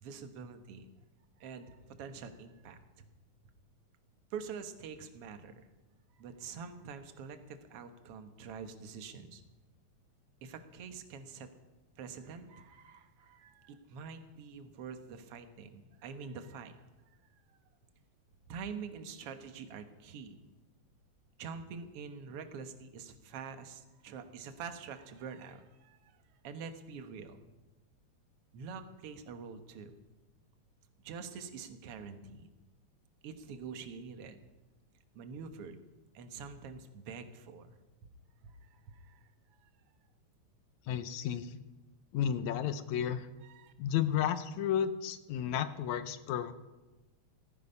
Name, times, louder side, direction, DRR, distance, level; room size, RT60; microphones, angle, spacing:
voice 1, 0.0-0.9 1.4-3.1 4.3-5.7 6.2-9.4 10.4-11.5 12.0-16.8 18.5-20.4 21.4-26.2 26.4-27.4 28.5-29.9 31.0-32.5 33.2-34.4 35.2-35.8 36.1-37.8 38.4-39.3 39.6-39.7 43.4-43.7, right 6 dB, 60° right, 8 dB, 2.0 m, -46 dB
voice 2, 40.9-41.5 42.1-43.3 43.8-46.5, left 9 dB, 80° left, 12 dB, 2.1 m, -32 dB
16.5 x 14.0 x 5.5 m, 1.1 s
omnidirectional pair, 3.4 m